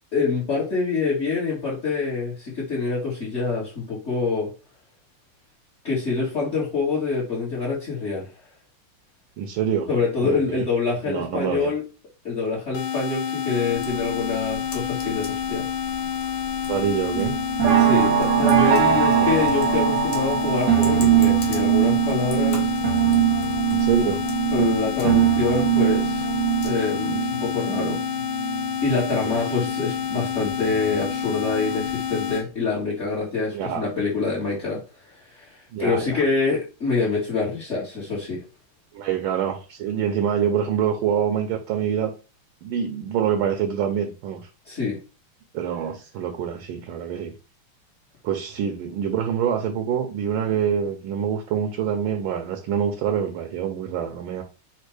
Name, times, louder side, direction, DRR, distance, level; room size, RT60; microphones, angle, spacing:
voice 1, 0.1-4.5 5.8-8.3 9.9-11.8 12.2-15.6 17.8-22.8 24.5-26.3 26.6-28.0 28.8-34.8 35.3-38.4 44.7-45.0, left 4 dB, 35° left, -5 dB, 1.7 m, -26 dB
voice 2, 9.4-9.9 10.2-10.7 11.1-11.7 16.7-17.3 19.2-19.4 23.7-24.2 29.2-29.4 33.5-33.8 35.7-36.2 38.9-42.1 42.6-44.5 45.5-47.3 48.2-54.4, right 8 dB, 75° right, 5 dB, 1.3 m, -26 dB
sound 1, 12.7-32.4, left 9 dB, 90° left, 1.8 m, -29 dB
Computer keyboard, 13.7-26.7, left 2 dB, 55° left, 1.3 m, -41 dB
sound 2, 17.1-29.3 29.7-31.3 31.6-32.0 32.3-32.4, right 10 dB, 50° right, 1.0 m, -22 dB
4.4 x 2.5 x 4.7 m, 0.34 s
omnidirectional pair, 2.4 m